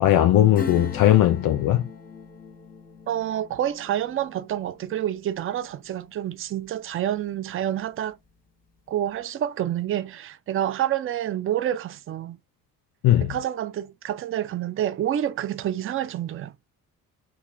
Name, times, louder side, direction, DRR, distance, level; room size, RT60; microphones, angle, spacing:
voice 1, 0.0-1.9 13.0-13.3, left 12 dB, 50° left, 0.5 m, -18 dB
Acoustic guitar / Strum, 0.5-6.8 7.1-7.2, left 5 dB, 20° left, 1.0 m, -40 dB
voice 2, 3.1-8.2 8.9-12.4 13.2-16.5, right 11 dB, 30° right, 0.4 m, -28 dB
2.8 x 2.4 x 2.3 m
hypercardioid pair, 45°, 46 cm